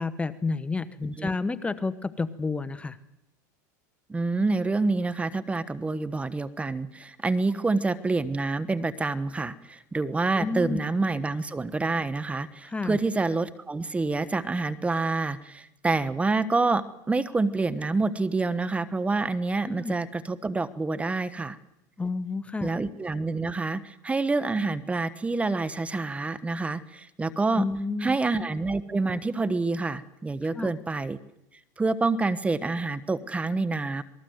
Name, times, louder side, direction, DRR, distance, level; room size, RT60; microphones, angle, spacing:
voice 1, 0.0-3.0 10.3-10.8 12.6-13.0 19.6-19.9 22.0-22.7 27.6-28.2 30.4-30.7, left 3 dB, 10° left, 14 dB, 1.0 m, -30 dB
voice 2, 4.1-21.6 22.6-27.7 28.0-31.2 31.8-34.0, right 3 dB, 15° right, 15 dB, 1.1 m, -27 dB
27.0 x 20.5 x 7.9 m, 0.90 s
hypercardioid pair, 110°, 10 cm